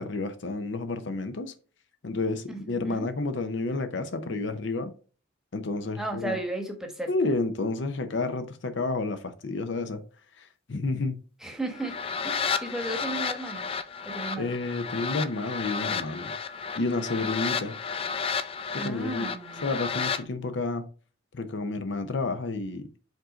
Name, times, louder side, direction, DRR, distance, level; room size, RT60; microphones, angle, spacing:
voice 1, 0.0-1.5 2.0-4.9 5.5-6.4 7.1-10.0 10.4-11.2 14.4-16.3 16.7-17.7 18.7-19.3 19.6-20.8 21.3-22.9, left 3 dB, 65° left, 0.6 m, -30 dB
voice 2, 2.5-3.1 6.0-7.1 11.4-12.0 12.2-13.7 14.0-14.5 18.7-19.7, right 2 dB, 5° right, 1.1 m, -35 dB
sound 1, 11.7-20.2, left 6 dB, 30° left, 0.4 m, -32 dB
5.3 x 3.8 x 5.0 m
head